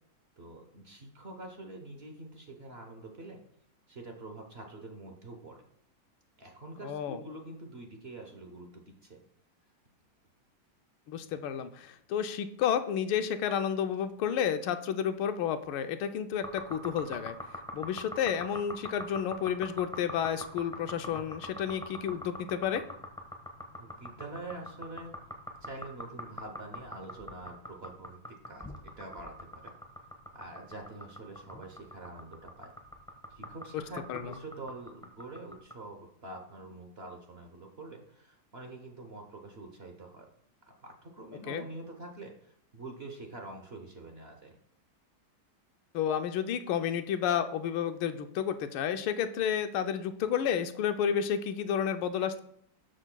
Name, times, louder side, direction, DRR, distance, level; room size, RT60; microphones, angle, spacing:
voice 1, 0.4-3.4 3.9-5.6 6.4-9.2 23.8-25.1 25.6-28.2 28.5-28.7 29.0-29.7 30.3-32.7 33.3-40.3 40.8-44.6, right 2 dB, 50° right, 3 dB, 0.7 m, -45 dB
voice 2, 6.8-7.2 11.1-17.4 17.7-22.8 34.1-34.3 41.5-41.6 45.9-52.4, left 8 dB, 85° left, 9 dB, 1.5 m, -31 dB
sound 1, 16.4-35.7, left 1 dB, 5° left, 0.5 m, -43 dB
12.5 x 6.3 x 2.2 m, 0.70 s
omnidirectional pair, 2.2 m